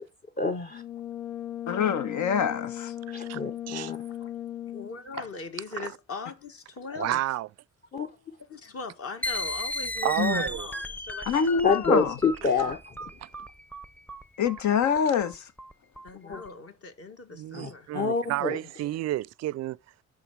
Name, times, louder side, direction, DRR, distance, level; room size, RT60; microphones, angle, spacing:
voice 1, 0.4-0.8 3.1-4.0 7.9-8.1 11.6-13.1 16.3-16.4 17.5-18.6, left 4 dB, 30° left, 0.9 m, -27 dB
Brass instrument, 0.7-5.1, left 11 dB, 90° left, 0.7 m, -37 dB
voice 2, 1.7-2.9 10.2-10.4 11.3-12.2 14.4-15.5, left 7 dB, 75° left, 1.1 m, -25 dB
voice 3, 3.1-3.4 3.7-3.9 5.8-5.9 7.0-7.5 10.0-10.7 13.2-13.3 17.3-19.8, right 15 dB, 60° right, 0.4 m, -31 dB
voice 4, 4.7-7.2 8.5-11.4 12.7-12.8 16.0-17.9 18.6-18.7, left 4 dB, 50° left, 1.9 m, -40 dB
sound 1, 9.2-16.5, left 1 dB, 5° left, 0.7 m, -35 dB
10.5 x 3.7 x 6.1 m
cardioid pair, 90°, 30 cm